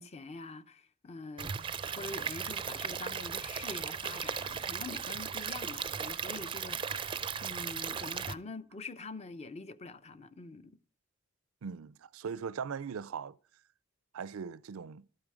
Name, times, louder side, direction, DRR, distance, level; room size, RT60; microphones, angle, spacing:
voice 1, 0.0-1.5 1.9-10.8, left 3 dB, 30° left, 0.6 m, -45 dB
Stream / Liquid, 1.4-8.3, right 6 dB, 25° right, 0.4 m, -37 dB
voice 2, 11.6-13.4 14.1-15.1, right 6 dB, 85° right, 0.4 m, -39 dB
12.0 x 8.9 x 4.8 m
head